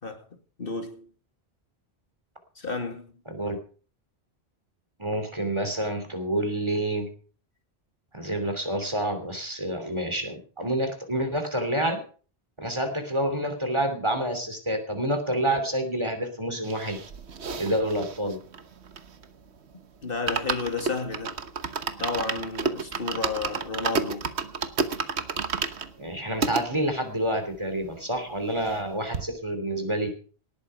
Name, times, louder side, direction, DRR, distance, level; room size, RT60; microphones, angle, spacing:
voice 1, 0.6-1.1 2.6-3.0 20.0-21.4 22.0-24.3, left 4 dB, 60° left, 2.5 m, -32 dB
voice 2, 5.0-7.1 8.1-12.0 12.6-17.0 17.6-18.4 26.0-30.1, right 1 dB, 25° right, 3.1 m, -28 dB
sound 1, 16.6-19.4 19.7-19.8 20.1-26.6 27.2-27.3 27.5-27.6 27.9-28.9 29.1-29.2, right 5 dB, 85° right, 1.4 m, -31 dB
18.5 x 8.6 x 5.6 m
omnidirectional pair, 1.1 m